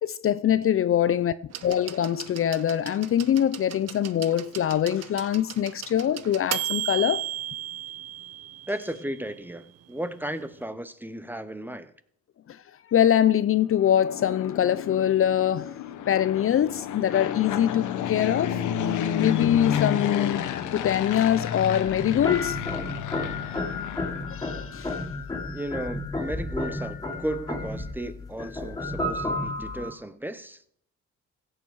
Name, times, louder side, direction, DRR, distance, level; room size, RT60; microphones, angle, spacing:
voice 1, 0.0-1.3 1.6-7.3 12.5-12.6 12.9-15.7 16.1-18.6 19.2-22.6 24.3-25.0, left 10 dB, 45° left, 0.5 m, -23 dB
sound 1, 1.5-9.3 10.4-10.5, right 12 dB, 60° right, 0.8 m, -35 dB
voice 2, 8.7-11.9 25.5-30.7, right 1 dB, 5° right, 0.8 m, -34 dB
Fixed-wing aircraft airplane, 13.6-24.7, left 9 dB, 80° left, 1.1 m, -31 dB
sound 2, 21.8-29.9, left 2 dB, 10° left, 2.8 m, -32 dB
16.0 x 7.1 x 4.7 m
cardioid pair, 90°, 30 cm